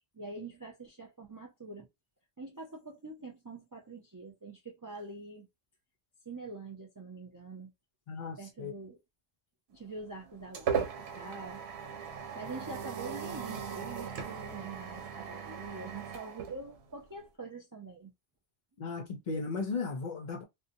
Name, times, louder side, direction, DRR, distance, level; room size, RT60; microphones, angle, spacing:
voice 1, 0.1-1.9 2.4-5.5 6.3-7.7 8.4-9.0 9.7-11.6 12.3-18.1, right 3 dB, 35° right, 0.3 m, -45 dB
voice 2, 8.1-8.7 18.8-20.4, left 4 dB, 55° left, 0.5 m, -36 dB
sound 1, 9.8-17.2, right 7 dB, 90° right, 0.9 m, -38 dB
2.7 x 2.1 x 2.5 m
omnidirectional pair, 1.1 m